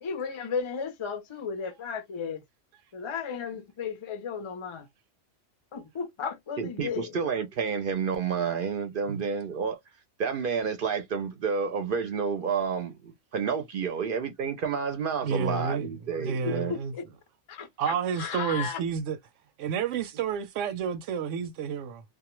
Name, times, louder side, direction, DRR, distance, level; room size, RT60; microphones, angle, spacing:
voice 1, 0.0-2.4 2.9-4.9 5.7-7.2 16.4-17.0 17.5-18.8, left 6 dB, 45° left, 0.4 m, -34 dB
voice 2, 6.6-9.8 10.2-16.7, right 6 dB, 60° right, 0.6 m, -30 dB
voice 3, 15.2-15.9 16.2-16.9 17.8-19.2 19.6-22.0, right 6 dB, 85° right, 0.9 m, -30 dB
2.3 x 2.1 x 3.0 m
omnidirectional pair, 1.2 m